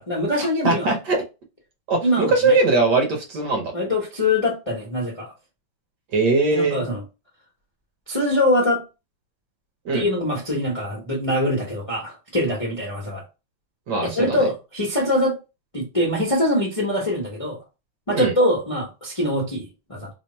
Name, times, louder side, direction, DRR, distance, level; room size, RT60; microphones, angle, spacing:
voice 1, 0.1-1.0 2.0-2.6 3.7-5.3 6.5-7.0 8.1-8.8 9.9-13.2 14.0-15.4 15.7-17.6 18.1-20.1, left 1 dB, 30° left, 0.6 m, -23 dB
voice 2, 0.6-1.2 1.9-3.7 6.1-6.8 9.8-10.0 13.9-14.4 18.1-18.3, right 3 dB, 60° right, 1.3 m, -20 dB
3.4 x 2.2 x 4.1 m
omnidirectional pair, 2.3 m